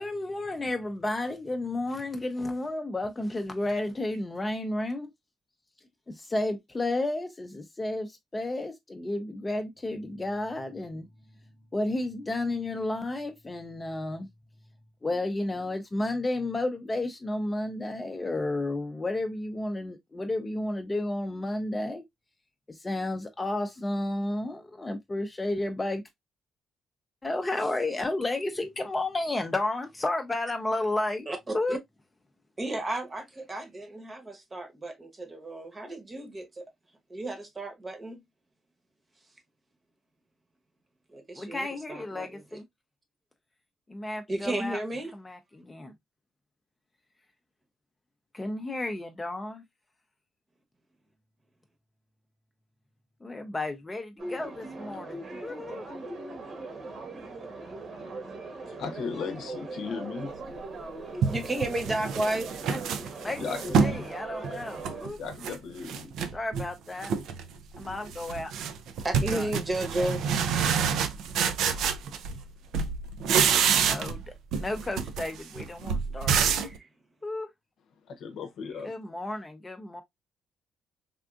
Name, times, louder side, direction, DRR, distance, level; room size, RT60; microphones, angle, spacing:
voice 1, 0.0-5.1 6.1-11.1 11.7-14.3 15.0-22.0 22.7-26.0 27.2-31.3 31.5-31.8 41.4-42.6 43.9-44.8 45.2-45.9 48.3-49.6 53.2-55.9 62.7-62.8 63.2-65.2 66.3-67.1 67.8-68.5 69.3-69.5 70.0-70.1 73.8-74.3 74.6-76.4 77.2-77.5 78.8-80.0, left 2 dB, 20° left, 0.5 m, -32 dB
voice 2, 31.3-31.8 32.6-36.7 37.1-38.2 41.1-42.6 44.3-45.1 61.3-62.7 69.0-70.3 76.6-76.9, right 1 dB, 30° right, 0.9 m, -33 dB
sound 1, 54.2-65.1, right 3 dB, 50° right, 1.1 m, -40 dB
voice 3, 58.3-60.4 63.4-64.1 65.2-66.1 78.1-79.0, left 5 dB, 75° left, 0.7 m, -37 dB
sound 2, 60.6-60.7 61.2-64.0 64.4-65.6 65.9-66.7 67.0-67.5 67.8-72.5 72.7-74.3 74.5-76.8, right 6 dB, 80° right, 0.4 m, -27 dB
3.5 x 2.5 x 2.3 m
cardioid pair, 90°, 0 cm